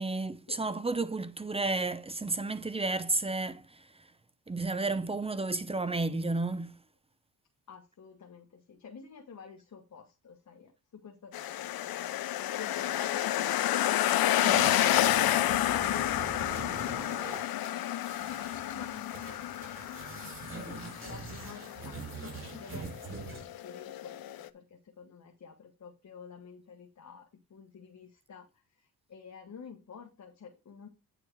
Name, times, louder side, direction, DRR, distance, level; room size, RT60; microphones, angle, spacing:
voice 1, 0.0-3.9 4.5-6.7 14.4-14.7, right 3 dB, 15° right, 0.6 m, -32 dB
voice 2, 7.7-13.8 14.4-20.2 20.5-30.9, left 6 dB, 50° left, 1.3 m, -50 dB
sound 1, 11.3-24.5, left 13 dB, 70° left, 0.7 m, -30 dB
sound 2, 14.5-23.6, right 4 dB, 35° right, 5.4 m, -43 dB
8.9 x 4.5 x 4.7 m
cardioid pair, 85°, 37 cm